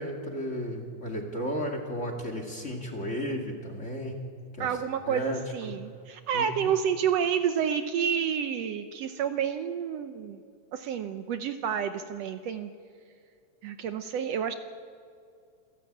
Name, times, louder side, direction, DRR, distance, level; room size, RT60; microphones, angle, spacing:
voice 1, 0.0-4.2 4.5-4.7 5.1-5.4 5.7-5.8 6.3-6.7, equal, 25° left, 4 dB, 2.1 m, -34 dB
voice 2, 4.6-10.4 10.7-12.7 13.6-14.5, right 8 dB, 75° right, 8 dB, 1.8 m, -29 dB
27.5 x 11.5 x 8.6 m, 2.2 s
omnidirectional pair, 3.3 m